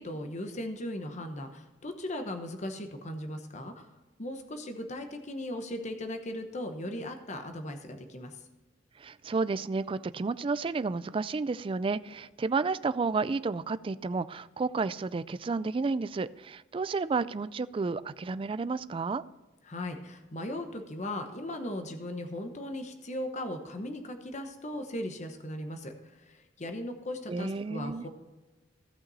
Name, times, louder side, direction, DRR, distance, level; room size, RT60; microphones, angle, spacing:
voice 1, 0.0-3.9 4.2-8.4 19.7-28.1, left 1 dB, 40° left, 1.0 m, -38 dB
voice 2, 9.0-19.2 27.3-28.1, right 4 dB, 25° right, 0.3 m, -31 dB
16.0 x 5.9 x 4.1 m
head